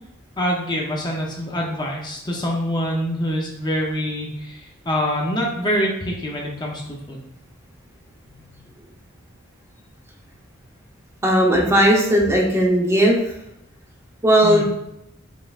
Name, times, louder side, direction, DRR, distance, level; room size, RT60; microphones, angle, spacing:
voice 1, 0.4-7.2 14.4-14.6, equal, 20° left, -1 dB, 0.6 m, -25 dB
voice 2, 11.2-13.2 14.2-14.6, right 1 dB, 15° right, -1 dB, 0.7 m, -16 dB
5.3 x 3.6 x 2.4 m, 0.82 s
head